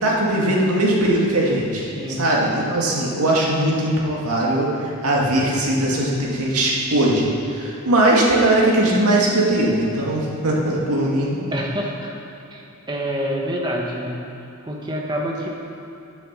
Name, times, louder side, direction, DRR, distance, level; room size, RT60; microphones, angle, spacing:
voice 1, 0.0-1.8 2.2-11.4, right 1 dB, 85° right, -3 dB, 2.0 m, -20 dB
voice 2, 1.8-2.3 11.5-12.1 12.5-14.2 14.7-15.5, equal, 20° right, -1 dB, 1.2 m, -27 dB
8.9 x 7.7 x 6.7 m, 2.7 s
head